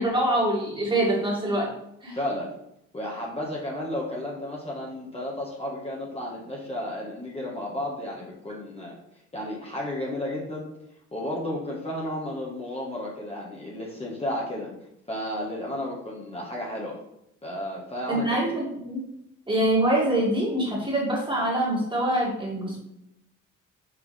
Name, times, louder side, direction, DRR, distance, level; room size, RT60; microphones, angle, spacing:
voice 1, 0.0-1.7 2.0-2.2 18.1-19.0 19.5-22.8, right 1 dB, 15° right, -4 dB, 2.4 m, -25 dB
voice 2, 2.1-2.5 2.9-9.0 9.3-10.7 11.1-14.7 15.1-17.0 17.4-18.4, left 1 dB, 20° left, -4 dB, 1.6 m, -33 dB
6.1 x 4.6 x 3.5 m, 0.80 s
cardioid pair, 90°, 30 cm